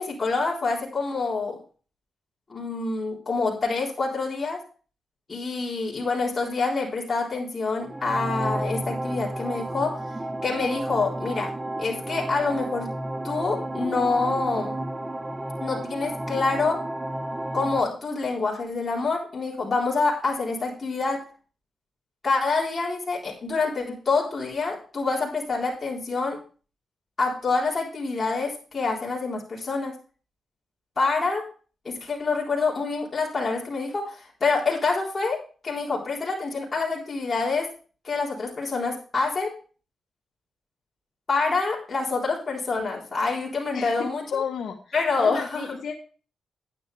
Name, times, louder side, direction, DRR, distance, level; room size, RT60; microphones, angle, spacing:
voice 1, 0.0-1.6 2.5-4.6 5.3-10.0 10.4-11.5 11.8-12.9 13.2-14.8 15.6-16.8 17.5-21.2 22.2-26.4 27.2-29.9 31.0-31.4 31.8-35.4 35.6-37.7 38.0-39.5 41.3-44.4 44.9-45.6, left 4 dB, 40° left, -4 dB, 3.8 m, -26 dB
sound 1, 7.8-17.8, right 1 dB, 20° right, 1.0 m, -32 dB
voice 2, 43.7-45.9, left 7 dB, 70° left, 3 dB, 1.2 m, -33 dB
10.5 x 9.9 x 3.3 m, 0.38 s
cardioid pair, 70°, 0 cm